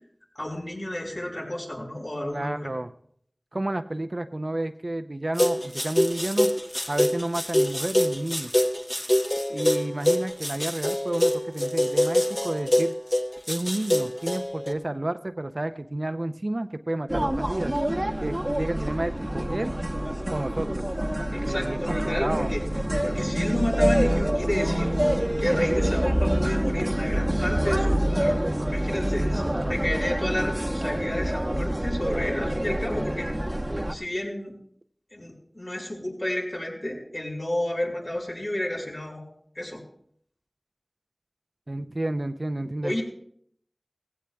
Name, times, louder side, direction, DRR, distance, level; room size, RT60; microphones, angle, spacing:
voice 1, 0.3-2.7 21.3-22.6 23.0-25.0 25.4-28.4 28.7-33.3 33.9-34.5 35.1-39.2 39.5-39.8 42.8-43.0, left 1 dB, 60° left, -2 dB, 4.8 m, -31 dB
voice 2, 2.3-2.9 3.5-6.5 6.9-8.5 9.5-12.9 13.5-17.7 18.2-19.7 20.3-20.8 21.4-22.5 29.2-29.8 41.7-43.0, right 1 dB, 60° right, 8 dB, 0.6 m, -31 dB
sound 1, 5.4-14.7, left 1 dB, 35° left, 1.1 m, -24 dB
sound 2, 17.1-33.9, right 1 dB, 30° right, 0.9 m, -26 dB
18.0 x 16.0 x 2.3 m, 0.66 s
wide cardioid pair, 40°, 0 cm